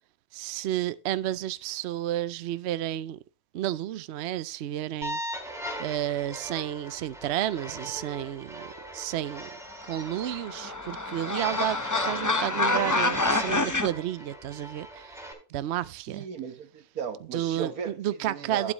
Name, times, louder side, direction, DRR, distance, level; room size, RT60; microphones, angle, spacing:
voice 1, 0.3-3.2 3.5-5.2 5.8-9.5 9.8-15.2 15.5-16.3 17.3-18.7, right 12 dB, 60° right, 0.7 m, -31 dB
sound 1, 5.0-15.3, right 1 dB, ahead, 3.6 m, -38 dB
sound 2, 10.0-13.9, left 3 dB, 20° left, 0.6 m, -27 dB
voice 2, 16.1-18.7, right 6 dB, 80° right, 1.7 m, -36 dB
12.0 x 8.7 x 3.0 m
omnidirectional pair, 1.5 m